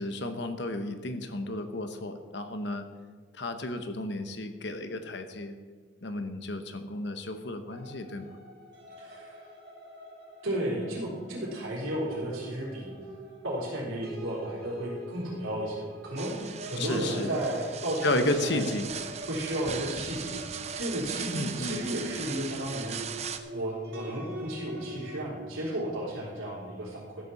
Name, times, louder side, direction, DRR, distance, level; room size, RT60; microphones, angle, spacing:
voice 1, 0.0-2.9 3.3-5.6 6.0-8.3 16.8-17.4 18.0-18.9 21.3-21.8, left 2 dB, 55° left, 8 dB, 1.0 m, -32 dB
sound 1, 7.7-25.2, right 1 dB, 50° right, 1.8 m, -44 dB
voice 2, 9.0-9.4 10.4-12.9 13.4-18.6 19.3-23.0 23.5-27.2, right 1 dB, 90° right, -5 dB, 3.9 m, -33 dB
sound 2, 16.2-23.4, right 7 dB, 30° right, 0.6 m, -39 dB
13.5 x 6.8 x 7.1 m, 1.5 s
head